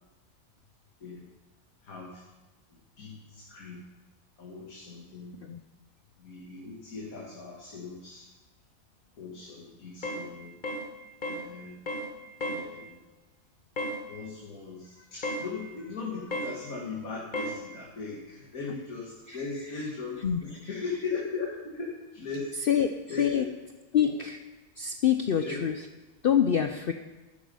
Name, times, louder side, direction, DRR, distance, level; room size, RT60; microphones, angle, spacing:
voice 1, 1.9-2.2 3.0-3.8 4.4-5.3 6.2-8.2 9.2-10.5 11.3-11.7 12.4-13.0 14.1-22.5 22.7-22.8 23.1-23.4 24.0-24.1 25.4-25.6, left 4 dB, 90° left, -3 dB, 2.3 m, -38 dB
sound 1, 10.0-10.3 10.6-10.9 11.2-11.5 11.9-12.1 12.4-12.7 13.8-14.0 15.2-15.5 16.3-16.6 17.3-17.6, equal, 35° left, 1.4 m, -33 dB
voice 2, 19.3-19.9 20.2-20.8 22.5-23.5 23.9-24.4 24.8-25.9 26.2-26.9, left 8 dB, 60° left, 8 dB, 0.6 m, -27 dB
12.0 x 9.6 x 5.4 m, 1.2 s
omnidirectional pair, 1.4 m